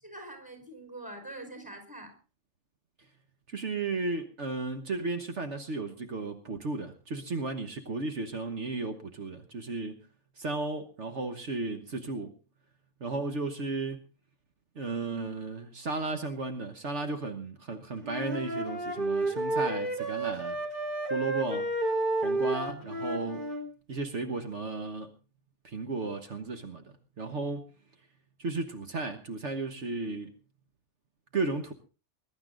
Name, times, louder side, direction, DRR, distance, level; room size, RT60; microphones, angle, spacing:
voice 1, 0.0-2.1, right 1 dB, 5° right, 6 dB, 4.9 m, -44 dB
voice 2, 3.5-10.0 10.4-12.3 13.0-14.0 14.7-20.6 21.1-21.7 22.2-23.5 23.9-25.1 25.6-26.8 27.2-27.7 28.4-30.3 31.3-31.7, right 3 dB, 70° right, 6 dB, 1.6 m, -34 dB
Wind instrument woodwind instrument, 18.0-23.7, right 2 dB, 40° right, 3.3 m, -31 dB
21.5 x 11.5 x 3.9 m, 0.34 s
omnidirectional pair, 1.3 m